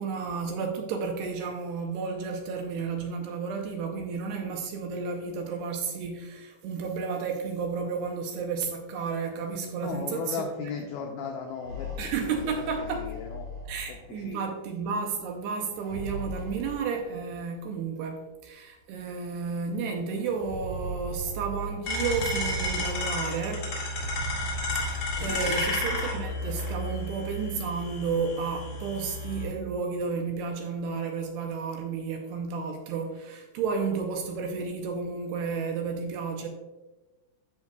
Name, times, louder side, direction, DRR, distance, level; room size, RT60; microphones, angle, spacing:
voice 1, 0.0-10.7 12.0-13.1 13.7-23.7 24.8-36.5, right 5 dB, 80° right, 3 dB, 2.5 m, -32 dB
voice 2, 9.8-12.5 12.8-13.5 13.9-14.6 25.3-25.6, left 6 dB, 90° left, 2 dB, 2.1 m, -37 dB
sound 1, 11.5-14.3 15.7-17.3 18.3-18.4 18.8-18.9 20.2-23.3 23.9-26.5, equal, 50° right, 2.8 m, -39 dB
sound 2, 21.8-29.4, left 1 dB, 50° left, 2.5 m, -32 dB
14.0 x 5.5 x 2.3 m, 1.1 s
omnidirectional pair, 5.2 m